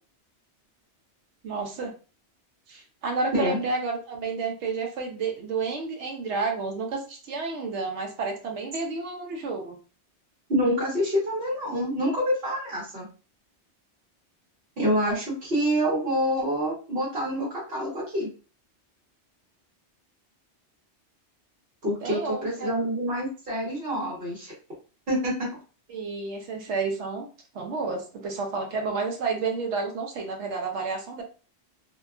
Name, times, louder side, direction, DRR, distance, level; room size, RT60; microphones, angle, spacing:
voice 1, 1.4-1.9 2.7-9.8 22.0-22.7 25.9-27.3 27.5-31.2, right 4 dB, 80° right, 3 dB, 0.9 m, -30 dB
voice 2, 10.5-13.1 14.8-18.3 21.8-24.5 25.1-25.5, equal, 55° right, -5 dB, 1.2 m, -26 dB
2.7 x 2.2 x 2.4 m, 0.36 s
omnidirectional pair, 1.2 m